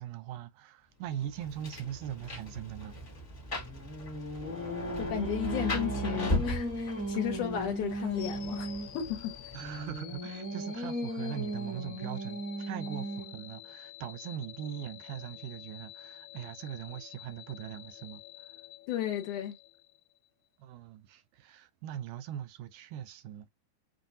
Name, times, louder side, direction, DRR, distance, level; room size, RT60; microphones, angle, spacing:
voice 1, 0.0-3.0 9.5-18.6 20.6-23.5, right 10 dB, 80° right, 1.9 m, -41 dB
Rain, 1.1-10.2, equal, 30° left, 1.3 m, -38 dB
Singing, 3.5-9.0 9.6-13.5, right 1 dB, 10° right, 0.6 m, -37 dB
voice 2, 5.0-8.7 8.9-9.3 18.9-19.5, left 10 dB, 70° left, 2.4 m, -34 dB
sound 1, 8.1-20.3, left 13 dB, 90° left, 2.6 m, -49 dB
7.6 x 2.6 x 2.6 m
omnidirectional pair, 4.0 m